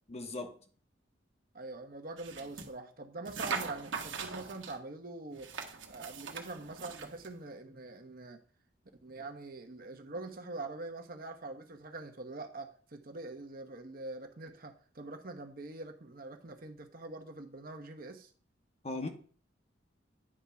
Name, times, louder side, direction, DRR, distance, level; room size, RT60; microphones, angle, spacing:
voice 1, 0.1-0.5 18.8-19.1, left 2 dB, 35° left, 1.1 m, -37 dB
voice 2, 1.5-5.5 5.9-8.4 9.0-18.3, right 2 dB, 50° right, 1.1 m, -44 dB
sound 1, 2.2-2.7 3.3-4.8 5.4-7.3, right 5 dB, 80° right, 1.3 m, -40 dB
9.8 x 3.7 x 5.6 m
head